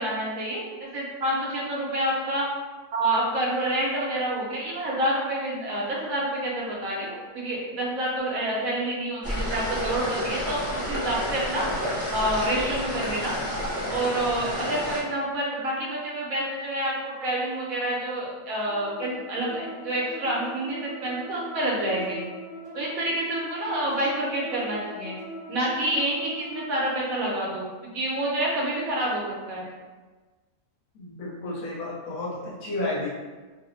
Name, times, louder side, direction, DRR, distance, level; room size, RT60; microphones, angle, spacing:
voice 1, 0.0-2.5 2.9-11.7 12.1-13.3 13.9-22.2 22.7-25.2 25.5-29.2 29.5-29.7, right 1 dB, 80° right, -4 dB, 1.2 m, -28 dB
sound 1, 9.2-15.0, equal, 20° left, 0.3 m, -30 dB
sound 2, 18.7-26.9, equal, 35° right, 1.3 m, -41 dB
voice 2, 30.9-33.1, left 2 dB, 75° left, -6 dB, 1.2 m, -32 dB
3.0 x 2.0 x 2.6 m, 1.3 s
omnidirectional pair, 1.5 m